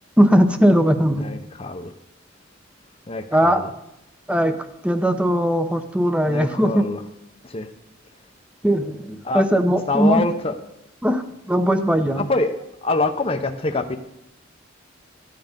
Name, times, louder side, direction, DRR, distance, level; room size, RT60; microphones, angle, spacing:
voice 1, 0.2-1.3 3.3-3.6 4.3-4.6 4.8-6.9 8.6-10.2 11.0-11.2 11.5-12.2, equal, 5° right, 9 dB, 0.8 m, -19 dB
voice 2, 1.2-1.9 3.1-3.7 6.3-7.0 7.4-7.7 9.2-9.4 9.9-10.6 12.1-12.5 12.8-14.0, left 3 dB, 30° left, 5 dB, 0.7 m, -25 dB
14.0 x 9.5 x 5.2 m, 0.86 s
head